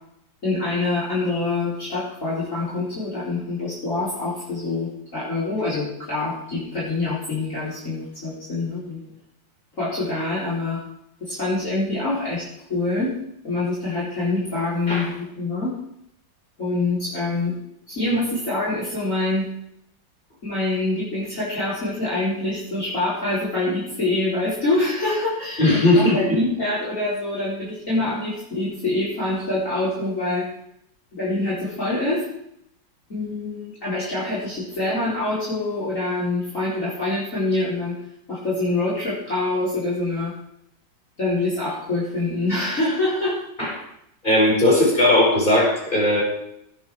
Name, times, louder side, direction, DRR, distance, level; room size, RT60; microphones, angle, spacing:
voice 1, 0.4-9.0 9.8-10.8 11.2-12.4 12.7-13.1 13.4-15.7 16.6-17.6 17.9-19.5 20.4-30.5 31.1-32.3 33.1-38.0 38.3-40.3 41.2-43.4, left 2 dB, 45° left, -7 dB, 4.4 m, -25 dB
voice 2, 25.6-26.2 43.6-43.7 44.2-46.2, left 1 dB, 25° left, -4 dB, 5.2 m, -17 dB
16.5 x 9.4 x 4.8 m, 0.75 s
omnidirectional pair, 1.9 m